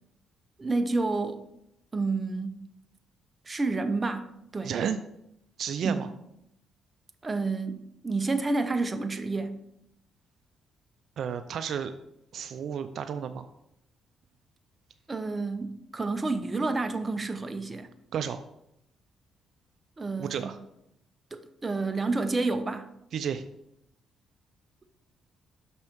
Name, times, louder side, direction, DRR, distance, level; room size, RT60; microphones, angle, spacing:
voice 1, 0.6-1.4 1.9-2.6 3.5-4.7 5.8-6.0 7.2-9.6 15.1-17.9 20.0-20.5 21.3-22.9, right 3 dB, 25° right, 0.7 m, -29 dB
voice 2, 4.6-5.0 5.6-6.1 11.2-11.9 12.3-13.5 18.1-18.4 20.2-20.6 23.1-23.4, right 8 dB, 65° right, 0.4 m, -32 dB
6.3 x 5.4 x 4.5 m
cardioid pair, 90°, 0 cm